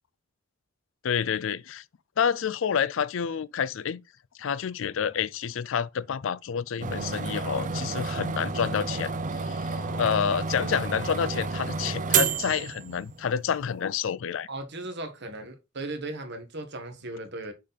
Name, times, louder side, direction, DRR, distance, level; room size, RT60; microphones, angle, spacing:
voice 1, 1.0-1.8 2.2-4.0 4.4-9.1 9.4-14.5, left 7 dB, 65° left, 0.4 m, -28 dB
sound 1, 6.8-13.3, right 5 dB, 40° right, 0.6 m, -30 dB
voice 2, 9.7-10.2 14.5-17.5, right 2 dB, 55° right, 1.4 m, -37 dB
6.2 x 4.1 x 4.0 m
head